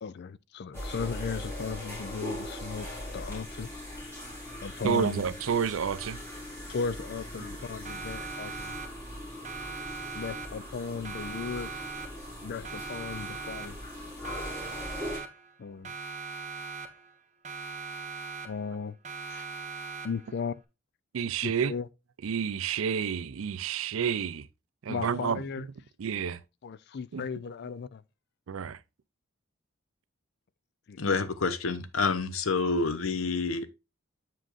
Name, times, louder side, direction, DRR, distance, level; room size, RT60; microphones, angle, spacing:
voice 1, 0.0-3.7 4.6-5.2 6.7-8.7 10.1-11.7 12.4-13.8 15.6-15.9 18.4-19.0 19.3-19.4 20.0-20.6 21.4-21.9 24.9-25.6 26.6-28.0 30.9-31.0, left 5 dB, 55° left, 0.4 m, -36 dB
sound 1, 0.7-15.2, left 1 dB, 15° left, 4.0 m, -40 dB
voice 2, 4.8-6.2 21.1-21.7 22.2-24.5 24.8-25.7 26.0-26.4 27.1-27.3 28.5-28.8, right 7 dB, 80° right, 0.4 m, -30 dB
Siren, 7.8-9.2 9.4-10.8 11.0-12.4 12.6-14.0 14.2-15.6 15.8-17.2 17.4-18.8 19.0-20.4, right 4 dB, 35° right, 1.0 m, -40 dB
voice 3, 31.0-33.7, left 4 dB, 80° left, 0.8 m, -28 dB
7.6 x 6.2 x 2.5 m
head